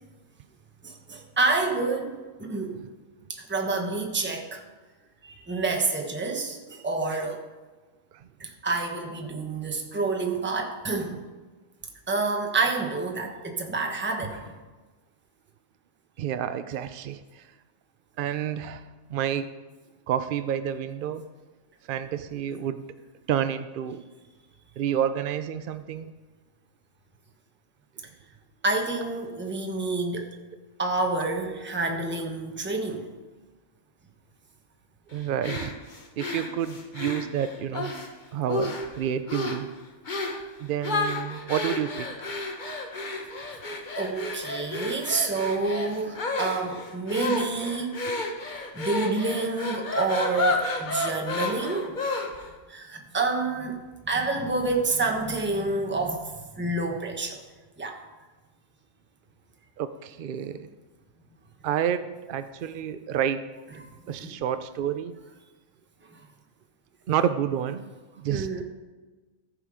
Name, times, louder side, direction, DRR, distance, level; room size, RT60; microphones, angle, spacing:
voice 1, 0.8-2.8 3.3-4.6 5.2-7.4 8.4-11.2 12.1-14.5 28.6-30.3 30.8-33.1 43.4-43.5 44.0-48.0 48.7-52.0 52.7-53.8 54.0-57.4 57.8-58.0 64.2-64.3 66.1-66.2 68.3-68.6, right 3 dB, 10° right, 3 dB, 1.0 m, -28 dB
voice 2, 16.2-17.4 18.2-19.5 20.1-21.2 21.9-22.9 23.3-24.0 24.8-26.1 32.1-32.3 35.1-35.8 36.2-37.9 38.3-39.7 40.6-42.1 48.1-48.2 59.8-60.7 61.6-63.4 64.1-65.2 67.1-67.9 68.2-68.6, right 9 dB, 70° right, 11 dB, 0.5 m, -29 dB
sound 1, 35.4-38.1 38.5-39.0 39.3-39.6 40.1-40.4 40.8-52.5, left 2 dB, 35° left, 1.1 m, -31 dB
14.0 x 6.9 x 5.0 m, 1.3 s
omnidirectional pair, 1.4 m